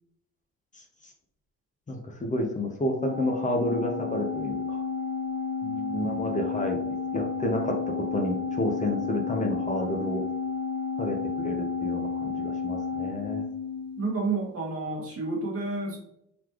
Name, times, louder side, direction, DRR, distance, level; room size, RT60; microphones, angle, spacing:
voice 1, 1.9-4.8 5.9-7.7 8.1-10.2 11.0-11.2 11.4-13.4, left 1 dB, 25° left, 2 dB, 0.8 m, -30 dB
Organ, 3.0-14.2, left 5 dB, 70° left, 1.6 m, -32 dB
voice 2, 5.6-6.3 14.0-16.0, right 3 dB, 50° right, 0 dB, 1.5 m, -31 dB
4.1 x 3.1 x 3.0 m, 0.73 s
cardioid pair, 90°, 30 cm